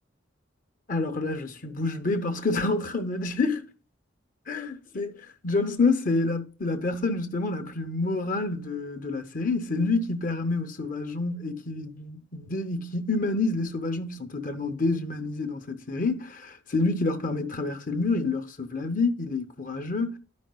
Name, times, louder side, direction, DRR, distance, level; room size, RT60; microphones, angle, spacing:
voice 1, 0.9-3.7 4.5-5.1 5.4-20.2, left 3 dB, 45° left, 0.8 m, -28 dB
12.5 x 5.2 x 2.2 m
head